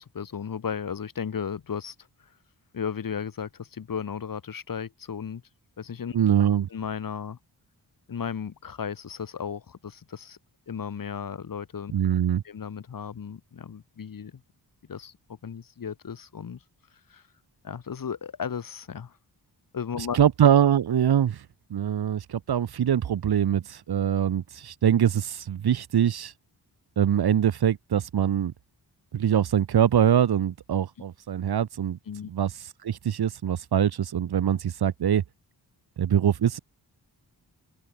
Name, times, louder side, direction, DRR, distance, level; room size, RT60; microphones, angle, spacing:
voice 1, 0.0-1.9 2.7-5.4 5.8-6.2 6.7-7.4 8.1-10.4 10.7-11.9 12.4-14.4 14.9-15.1 15.4-16.6 17.1-17.2 17.6-19.2 19.7-20.2 32.1-32.3, left 7 dB, 50° left, 1.3 m, -35 dB
voice 2, 6.1-6.7 11.9-12.4 20.0-21.4 21.7-26.3 27.0-28.5 29.1-32.0 32.3-32.5 32.8-35.2 36.0-36.6, right 9 dB, 60° right, 0.8 m, -23 dB
wide cardioid pair, 155°, 43 cm